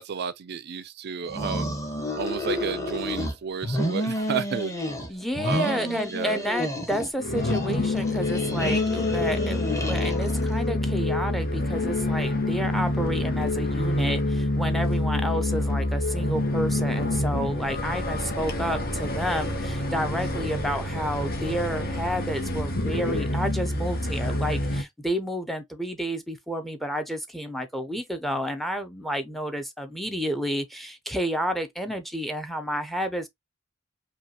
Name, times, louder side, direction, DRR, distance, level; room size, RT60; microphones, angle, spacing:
voice 1, 0.0-1.7 2.2-4.7 5.4-6.5, right 6 dB, 55° right, 0.4 m, -32 dB
sound 1, 1.3-3.3 3.6-5.1 5.3-7.1 7.3-10.5, left 1 dB, 15° left, 1.1 m, -30 dB
voice 2, 5.1-33.3, equal, ahead, 0.6 m, -30 dB
sound 2, 7.2-24.8, left 1 dB, 50° left, 1.1 m, -27 dB
5.3 x 2.3 x 2.8 m
head